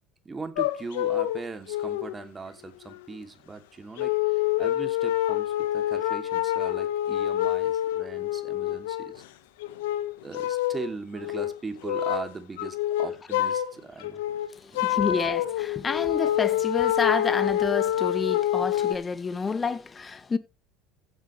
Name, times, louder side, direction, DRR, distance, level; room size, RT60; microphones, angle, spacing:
voice 1, 0.2-9.2 10.2-14.2 14.7-15.1, right 4 dB, 20° right, 2.8 m, -39 dB
sound 1, 0.6-1.4 1.7-2.1 2.9-3.0 4.0-9.2 9.6-10.9 11.2-11.5 11.8-12.3 12.6-13.7 14.0-19.0, left 13 dB, 75° left, 1.3 m, -27 dB
voice 2, 14.6-20.4, left 5 dB, 25° left, 1.7 m, -29 dB
15.0 x 8.5 x 3.3 m
hypercardioid pair, 75°, 0 cm